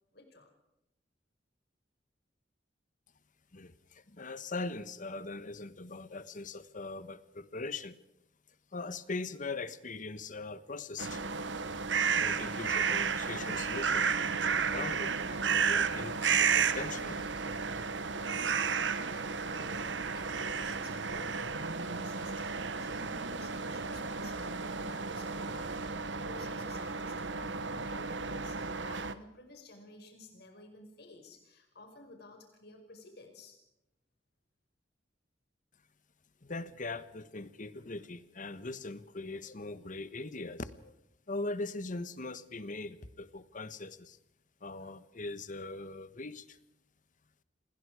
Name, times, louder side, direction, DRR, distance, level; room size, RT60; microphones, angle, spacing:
voice 1, 0.1-0.5 18.4-33.6, left 2 dB, 60° left, 4 dB, 5.4 m, -53 dB
voice 2, 3.5-8.0 8.7-11.2 12.1-17.5 36.4-40.9 41.3-44.2 44.6-46.6, left 3 dB, 45° left, 14 dB, 1.3 m, -41 dB
sound 1, 11.0-29.1, right 5 dB, 80° right, 1.2 m, -33 dB
28.5 x 21.5 x 4.9 m, 0.87 s
head